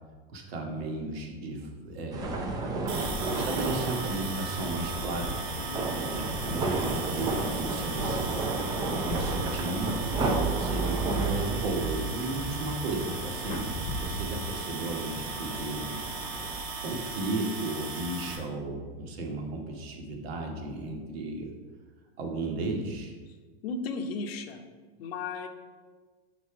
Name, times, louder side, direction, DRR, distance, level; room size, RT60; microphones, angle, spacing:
voice 1, 0.3-2.4 3.3-5.4 6.0-8.7 9.0-9.9 10.6-16.0 16.8-21.5 22.2-23.1, right 2 dB, 85° right, 2 dB, 1.3 m, -34 dB
sound 1, 2.1-16.6, right 3 dB, 15° right, 0.3 m, -33 dB
sound 2, 2.3-17.1, equal, 50° left, 0.8 m, -42 dB
sound 3, 2.9-18.4, right 4 dB, 40° right, 1.1 m, -38 dB
voice 2, 5.6-5.9 10.2-10.5 23.6-24.6 25.0-25.5, left 4 dB, 80° left, 7 dB, 0.8 m, -35 dB
5.2 x 4.2 x 4.6 m, 1.4 s
supercardioid pair, 150°, 30 cm